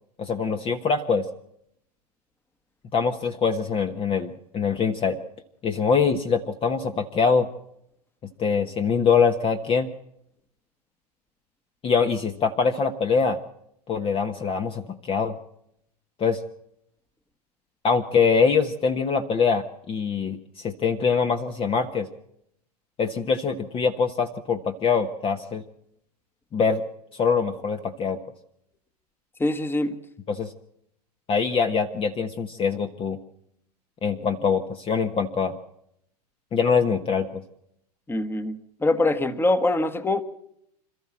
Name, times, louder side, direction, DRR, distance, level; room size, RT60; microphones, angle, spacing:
voice 1, 0.2-1.2 2.9-5.2 5.6-7.5 8.4-9.9 11.8-13.4 13.9-15.4 16.2-16.4 17.8-22.1 23.0-25.6 26.5-26.8 27.1-28.2 30.3-30.5 31.3-33.2 34.0-35.6 36.5-37.4, left 5 dB, 25° left, 7 dB, 1.2 m, -23 dB
voice 2, 29.4-30.0 38.1-40.2, left 2 dB, 10° left, 11 dB, 1.4 m, -24 dB
27.0 x 13.5 x 7.4 m, 0.76 s
hypercardioid pair, 105°, 21 cm